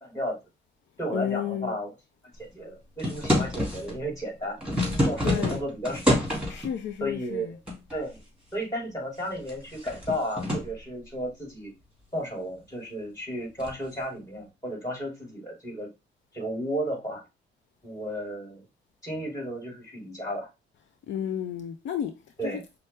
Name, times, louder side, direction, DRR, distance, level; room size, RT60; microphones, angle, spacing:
voice 1, 0.0-0.4 1.0-1.9 2.4-4.6 5.0-6.2 7.0-7.5 7.9-8.2 8.5-11.7 12.1-15.9 16.3-17.2 17.8-18.6 19.0-20.5 22.4-22.6, equal, 15° left, 2.8 m, -33 dB
voice 2, 1.1-1.8 5.2-5.6 6.5-7.6 21.1-22.1 22.4-22.6, left 9 dB, 70° left, 0.6 m, -32 dB
sound 1, 3.0-4.0 4.4-6.7 7.7-8.2 8.5-8.6 9.3-10.7 13.6-13.8, left 1 dB, 5° right, 2.2 m, -27 dB
5.5 x 2.1 x 3.3 m
cardioid pair, 90°, 20 cm